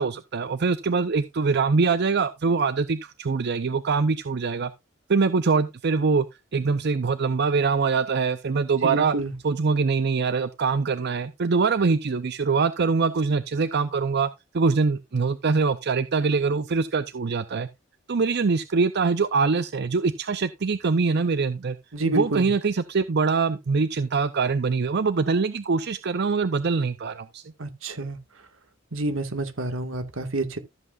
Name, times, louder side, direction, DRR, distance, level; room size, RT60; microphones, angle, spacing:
voice 1, 0.0-4.7 5.1-6.3 6.5-9.1 9.4-17.7 18.1-21.8 22.1-27.4, right 4 dB, 55° right, 0.6 m, -23 dB
voice 2, 8.8-9.3 21.9-22.5 27.6-28.2 28.9-30.6, right 2 dB, 80° right, 1.8 m, -28 dB
14.0 x 7.8 x 2.5 m
head